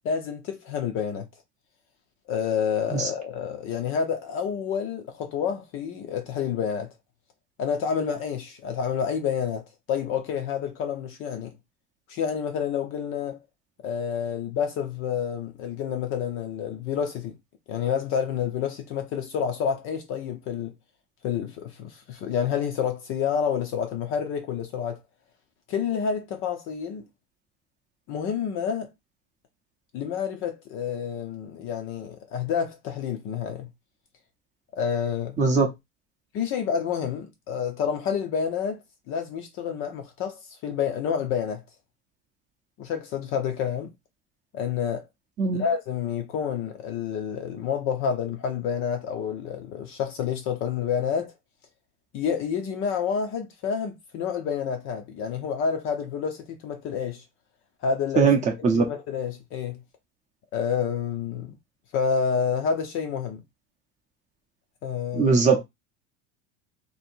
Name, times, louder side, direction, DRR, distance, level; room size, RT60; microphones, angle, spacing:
voice 1, 0.0-1.3 2.3-6.9 7.6-9.6 9.9-11.5 12.1-13.4 13.8-17.3 17.7-20.7 21.2-25.0 25.7-27.1 28.1-28.9 29.9-33.7 34.7-35.4 36.3-41.6 42.8-43.9 44.5-45.1 45.5-51.3 52.1-57.2 57.8-58.2 58.7-59.8 60.5-61.6 61.9-63.4 64.8-65.4, left 7 dB, 35° left, 0.5 m, -29 dB
voice 2, 35.4-35.7 45.4-45.6 58.2-58.8 65.1-65.6, right 4 dB, 20° right, 0.6 m, -20 dB
2.8 x 2.8 x 4.3 m
cardioid pair, 175°, 39 cm